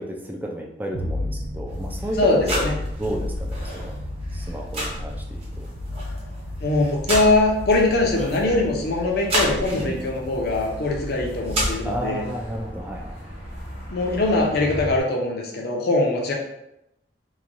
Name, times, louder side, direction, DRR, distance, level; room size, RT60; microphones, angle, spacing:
voice 1, 0.0-2.2 2.5-2.7 3.0-3.9 4.3-5.7 9.7-10.1 11.8-13.2, right 1 dB, 10° right, 1 dB, 0.3 m, -32 dB
sound 1, 0.9-12.1, left 1 dB, 85° right, 0.4 m, -33 dB
sound 2, 1.7-15.0, equal, 35° right, 0.8 m, -32 dB
voice 2, 2.2-2.7 6.6-12.3 13.9-16.3, left 2 dB, 60° left, 0 dB, 0.6 m, -22 dB
3.0 x 2.2 x 2.5 m, 0.84 s
head